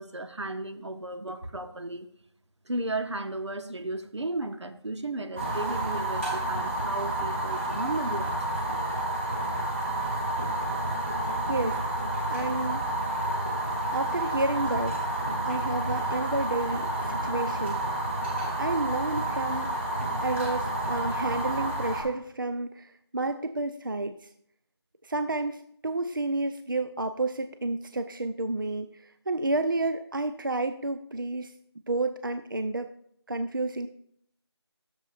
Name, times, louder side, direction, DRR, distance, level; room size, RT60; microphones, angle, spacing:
voice 1, 0.0-2.1 2.7-8.3, right 2 dB, 85° right, 8 dB, 0.9 m, -34 dB
Fire, 5.4-22.0, right 1 dB, 25° right, 1.6 m, -30 dB
voice 2, 11.2-11.8 12.3-12.8 13.9-15.0 15.5-17.8 18.6-19.8 20.2-24.2 25.0-31.5 31.9-32.9 33.3-33.9, right 2 dB, 50° right, 9 dB, 0.4 m, -30 dB
12.0 x 7.0 x 2.5 m, 0.67 s
figure-of-eight pair, 175°, 14 cm